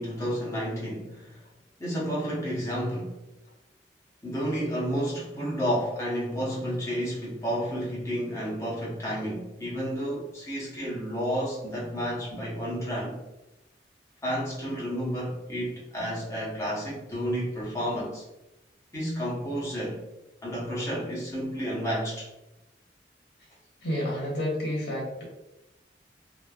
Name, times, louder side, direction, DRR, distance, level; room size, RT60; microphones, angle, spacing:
voice 1, 0.0-1.4 1.8-3.1 4.2-13.2 14.2-18.2 18.9-20.0 20.4-22.3, equal, 15° left, -6 dB, 0.8 m, -31 dB
voice 2, 23.8-25.2, equal, 75° left, -4 dB, 1.2 m, -30 dB
3.1 x 2.0 x 2.3 m, 0.97 s
head